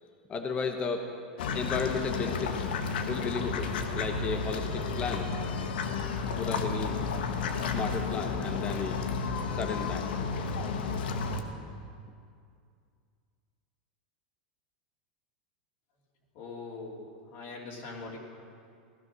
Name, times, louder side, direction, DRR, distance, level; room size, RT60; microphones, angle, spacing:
voice 1, 0.3-1.1 1.5-2.6 3.0-5.3 6.4-6.9 7.7-9.0 9.5-10.1, left 4 dB, 25° left, 5 dB, 1.0 m, -34 dB
sound 1, 1.4-11.4, left 5 dB, 80° left, 1.3 m, -32 dB
voice 2, 16.3-18.2, left 3 dB, 50° left, -3 dB, 3.0 m, -42 dB
16.5 x 12.0 x 6.2 m, 2.3 s
supercardioid pair, 135°, 5 cm